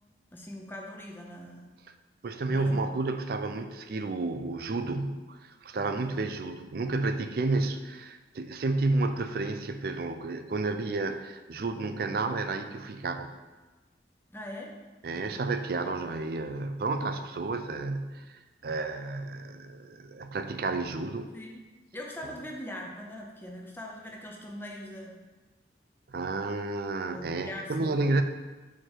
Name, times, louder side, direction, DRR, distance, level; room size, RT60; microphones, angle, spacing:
voice 1, 0.3-1.7 2.5-2.9 6.0-6.2 14.3-14.7 15.1-15.4 21.3-21.7 21.9-25.2 27.1-28.1, left 1 dB, 10° left, -1 dB, 0.7 m, -42 dB
voice 2, 2.2-13.3 15.0-21.3 22.2-22.3 26.1-28.2, right 3 dB, 55° right, 9 dB, 0.4 m, -31 dB
4.8 x 4.5 x 4.5 m, 1.2 s
head